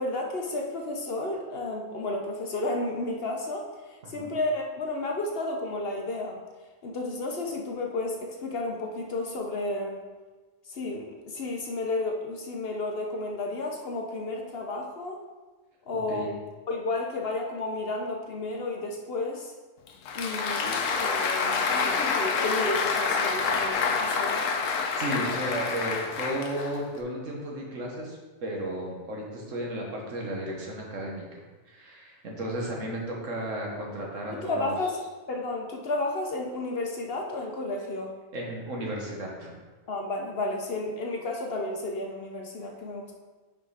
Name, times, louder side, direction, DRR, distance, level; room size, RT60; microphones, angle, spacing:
voice 1, 0.0-6.4 6.8-10.0 10.7-15.2 15.9-16.4 16.7-19.5 20.1-24.5 34.3-35.0 35.3-38.1 39.9-43.1, left 2 dB, 55° left, 1 dB, 0.9 m, -32 dB
voice 2, 4.0-4.3 16.1-16.3 25.0-31.2 31.7-34.7 38.3-39.6, right 1 dB, 70° right, -1 dB, 1.7 m, -34 dB
Applause, 19.9-27.0, left 5 dB, 75° left, 1.1 m, -27 dB
5.5 x 5.1 x 4.8 m, 1.3 s
omnidirectional pair, 1.4 m